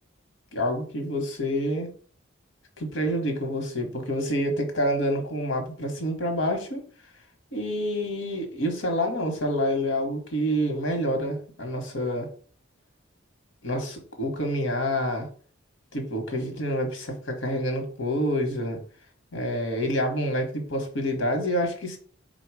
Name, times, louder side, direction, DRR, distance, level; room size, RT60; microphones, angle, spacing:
voice 1, 0.5-1.9 2.8-6.8 7.5-12.3 13.6-15.3 15.9-18.8 19.3-22.0, equal, 65° left, 4 dB, 1.1 m, -27 dB
4.2 x 2.3 x 4.7 m, 0.43 s
head